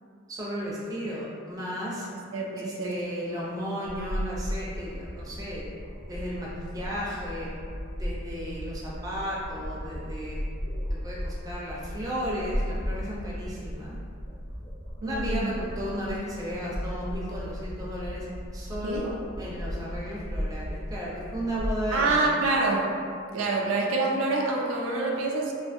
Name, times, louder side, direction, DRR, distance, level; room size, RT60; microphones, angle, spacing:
voice 1, 0.3-2.1 2.6-5.7 6.0-7.5 7.9-10.4 10.7-14.0 15.0-18.3 18.5-22.2, equal, 20° right, -6 dB, 0.4 m, -34 dB
voice 2, 2.3-3.0 15.0-15.6 18.8-19.0 21.9-22.9 23.3-25.5, right 3 dB, 85° right, -1 dB, 0.4 m, -26 dB
sound 1, 3.8-21.8, equal, 40° left, 0.7 m, -35 dB
2.5 x 2.5 x 2.5 m, 2.4 s
head